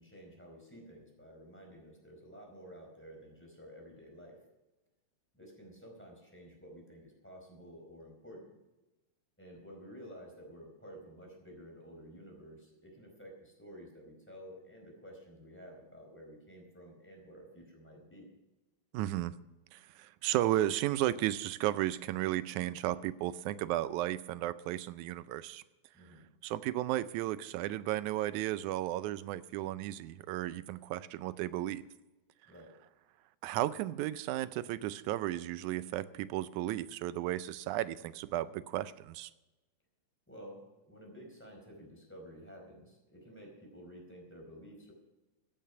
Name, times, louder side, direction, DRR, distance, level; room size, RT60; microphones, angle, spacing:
voice 1, 0.0-4.4 5.3-8.5 9.4-18.3 25.9-26.3 32.5-32.7 40.3-44.9, equal, 5° left, 0 dB, 4.3 m, -52 dB
voice 2, 18.9-19.3 19.7-25.6 26.4-31.9 33.4-39.3, right 14 dB, 85° right, 15 dB, 2.0 m, -34 dB
15.0 x 9.0 x 5.9 m, 1.0 s
omnidirectional pair, 3.4 m